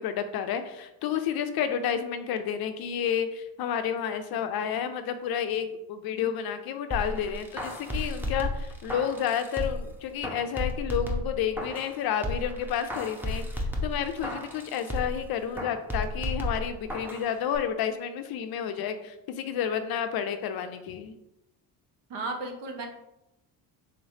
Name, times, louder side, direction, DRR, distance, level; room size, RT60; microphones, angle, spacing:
voice 1, 0.0-21.2, left 8 dB, 55° left, 8 dB, 0.5 m, -30 dB
sound 1, 6.9-9.9 10.2-11.9 12.2-15.2 15.6-17.2 17.5-17.6, left 1 dB, 5° right, 0.7 m, -33 dB
voice 2, 22.1-22.9, right 2 dB, 65° right, 3 dB, 0.9 m, -34 dB
3.9 x 3.1 x 2.7 m, 0.88 s
supercardioid pair, 70°, 46 cm